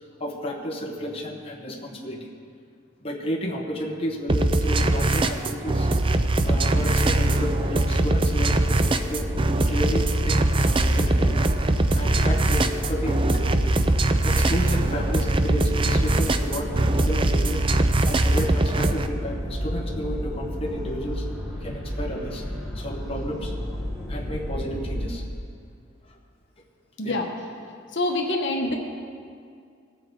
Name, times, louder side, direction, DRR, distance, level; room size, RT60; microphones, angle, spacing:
voice 1, 0.2-2.3 3.0-5.9 6.4-9.2 9.7-11.4 11.9-13.7 14.2-17.6 18.0-21.2 21.6-22.4 22.7-23.5 24.1-25.2 26.0-26.2 27.0-27.2, equal, 25° left, -1 dB, 1.2 m, -32 dB
sound 1, 4.3-19.1, right 2 dB, 25° right, 0.4 m, -22 dB
sound 2, 6.4-25.1, equal, ahead, 1.8 m, -32 dB
voice 2, 27.9-28.7, left 2 dB, 55° left, 2 dB, 1.2 m, -25 dB
20.0 x 7.5 x 3.9 m, 2.3 s
head